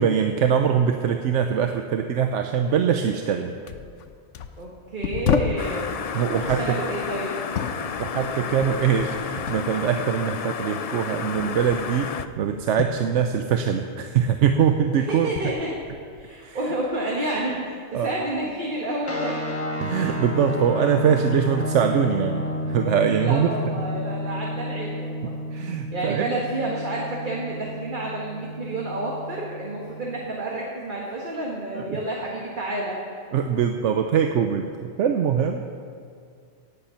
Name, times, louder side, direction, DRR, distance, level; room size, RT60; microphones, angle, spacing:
voice 1, 0.0-3.5 6.1-6.8 7.8-15.5 16.4-16.6 17.9-18.1 19.8-23.5 23.8-23.9 25.2-26.4 31.7-32.0 33.3-35.6, right 8 dB, 85° right, 6 dB, 1.0 m, -23 dB
sound 1, 3.7-5.7 6.4-9.7 10.0-13.8 14.1-16.4 16.9-17.6 18.4-18.5, left 7 dB, 90° left, 1.1 m, -33 dB
voice 2, 4.6-6.0 6.4-7.4 15.1-15.8 16.1-19.4 23.2-25.3 25.9-33.0, right 1 dB, 45° right, -3 dB, 1.7 m, -30 dB
sound 2, 5.6-12.3, left 7 dB, 60° left, 0.4 m, -32 dB
sound 3, 19.1-30.3, left 1 dB, 10° left, 1.1 m, -31 dB
17.5 x 8.8 x 5.7 m, 2.3 s
omnidirectional pair, 1.2 m